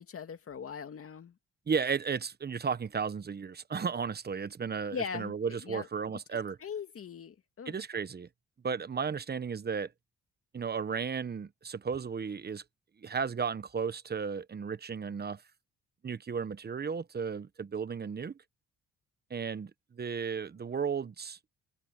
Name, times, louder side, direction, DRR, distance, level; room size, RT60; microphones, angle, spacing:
voice 1, 0.0-1.3 4.9-5.9 6.6-7.8, left 6 dB, 50° left, 2.4 m, -40 dB
voice 2, 1.7-6.6 7.7-8.3 8.6-9.9 10.5-12.6 13.0-15.4 16.0-18.3 19.3-21.4, right 6 dB, 35° right, 1.2 m, -34 dB
cardioid pair, 90°, 30 cm